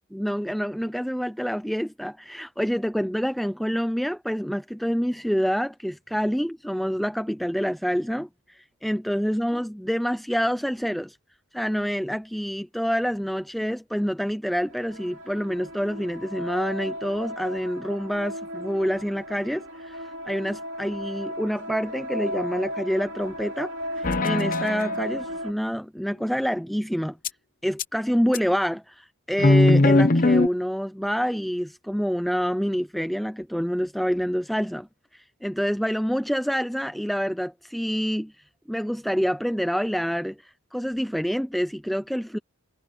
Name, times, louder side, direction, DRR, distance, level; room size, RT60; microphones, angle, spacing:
voice 1, 0.1-11.2 11.5-27.2 27.6-34.9 35.1-38.3 38.7-42.4, equal, ahead, 0.4 m, -27 dB
sound 1, 14.6-25.5, equal, 60° right, 3.4 m, -35 dB
sound 2, 24.0-25.0 27.2-27.3 27.8-27.9 28.3-28.4 29.4-30.5, left 2 dB, 40° left, 0.8 m, -19 dB
head